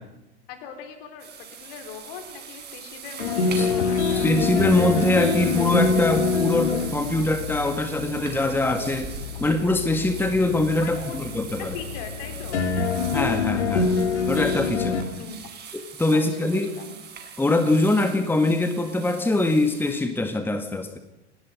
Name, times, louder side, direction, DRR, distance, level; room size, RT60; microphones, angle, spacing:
voice 1, 0.5-4.3 10.8-11.2 11.6-12.7 15.2-15.4 16.1-17.0, left 7 dB, 55° left, 6 dB, 4.5 m, -40 dB
sound 1, 1.2-19.9, right 7 dB, 30° right, 5.7 m, -41 dB
sound 2, 3.2-15.0, left 5 dB, 75° left, 2.9 m, -26 dB
voice 2, 4.1-9.1 9.4-11.8 13.1-15.0 15.7-16.7 17.4-21.0, left 2 dB, 5° left, 7 dB, 1.8 m, -23 dB
30.0 x 18.5 x 5.4 m, 0.92 s
figure-of-eight pair, 90°, 34 cm